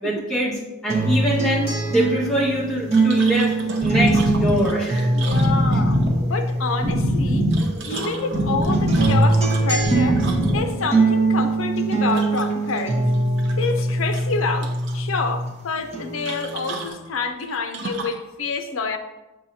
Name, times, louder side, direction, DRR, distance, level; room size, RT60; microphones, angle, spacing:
voice 1, 0.0-3.5 3.8-5.1, equal, 5° left, -8 dB, 1.4 m, -24 dB
sound 1, 0.9-7.5 7.9-15.5 15.9-16.9, right 2 dB, 30° right, 1.1 m, -23 dB
sound 2, 2.9-6.0 7.3-10.8 12.1-12.8 13.1-13.8 14.1-15.0 16.2-18.3, right 4 dB, 55° right, 0.6 m, -36 dB
sound 3, 3.3-10.6, equal, 75° right, 1.7 m, -23 dB
voice 2, 5.1-7.5 7.9-10.2 10.5-13.1 13.6-19.0, left 4 dB, 70° left, 6 dB, 0.6 m, -28 dB
7.3 x 5.4 x 2.7 m, 1.1 s
head